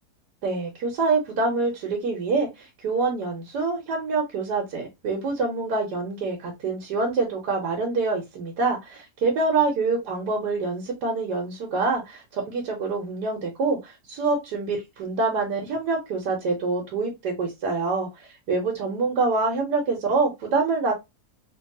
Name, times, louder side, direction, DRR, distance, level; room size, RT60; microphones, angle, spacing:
voice 1, 0.4-20.9, right 3 dB, 80° right, 1.3 m, -26 dB
3.1 x 2.3 x 2.6 m
omnidirectional pair, 1.7 m